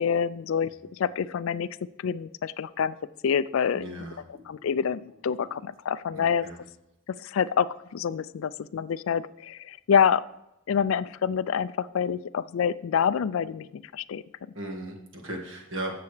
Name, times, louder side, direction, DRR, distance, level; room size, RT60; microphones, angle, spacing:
voice 1, 0.0-1.7 2.0-3.0 3.2-3.9 4.5-6.5 7.2-10.2 10.7-14.2, left 7 dB, 70° left, 17 dB, 0.3 m, -27 dB
voice 2, 3.7-4.4 6.1-6.6 14.5-15.9, right 1 dB, 65° right, 1 dB, 1.8 m, -37 dB
15.0 x 6.8 x 3.3 m, 0.86 s
head